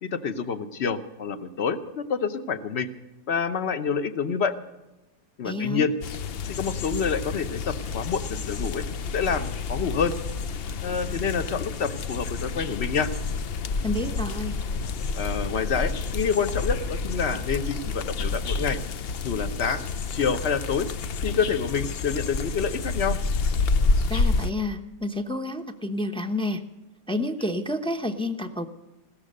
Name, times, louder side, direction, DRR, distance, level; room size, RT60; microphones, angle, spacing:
voice 1, 0.0-2.9 3.3-4.5 5.4-6.0 6.5-8.8 9.1-10.2 10.8-13.1 15.1-18.8 19.2-19.8 20.1-20.9 21.2-23.2, left 6 dB, 45° left, 11 dB, 1.0 m, -27 dB
voice 2, 5.4-5.9 13.8-14.6 24.1-26.6 27.1-28.7, left 1 dB, 5° left, 5 dB, 0.3 m, -29 dB
sound 1, 6.0-24.5, left 4 dB, 90° left, 0.5 m, -29 dB
16.5 x 13.5 x 6.5 m, 1.0 s
omnidirectional pair, 1.8 m